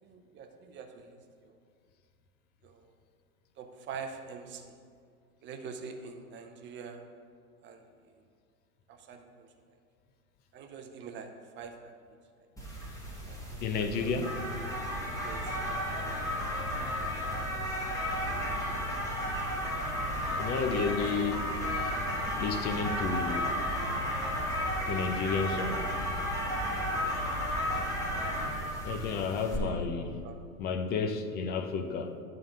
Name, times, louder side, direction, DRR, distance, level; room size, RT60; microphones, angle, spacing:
voice 1, 0.0-1.6 2.6-2.9 3.6-4.7 5.4-7.0 7.6-8.1 8.9-9.8 10.5-11.3 11.6-12.0 12.8-14.3 15.2-15.6 16.0-16.2 16.6-17.3 17.9-19.0 19.3-19.8 20.3-21.0 21.6-21.7 29.6-29.9 30.2-30.4, right 6 dB, 25° right, 5 dB, 0.7 m, -46 dB
sound 1, 12.6-29.6, equal, 5° left, 1.7 m, -33 dB
voice 2, 13.6-14.3 20.4-21.4 21.8-21.9 22.3-23.5 24.9-25.8 28.4-28.5 28.8-30.2 30.6-32.1, left 5 dB, 25° left, 7 dB, 0.5 m, -31 dB
11.0 x 3.8 x 6.4 m, 2.2 s
hypercardioid pair, 110°, 45 cm